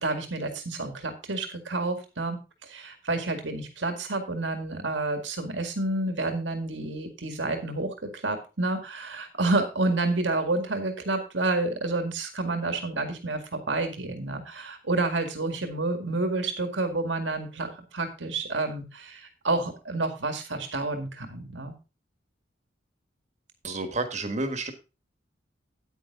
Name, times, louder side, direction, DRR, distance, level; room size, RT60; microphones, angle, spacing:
voice 1, 0.0-21.7, right 2 dB, 80° right, 6 dB, 2.0 m, -29 dB
voice 2, 23.6-24.7, right 2 dB, 40° right, 8 dB, 1.5 m, -30 dB
9.4 x 9.2 x 3.7 m, 0.29 s
head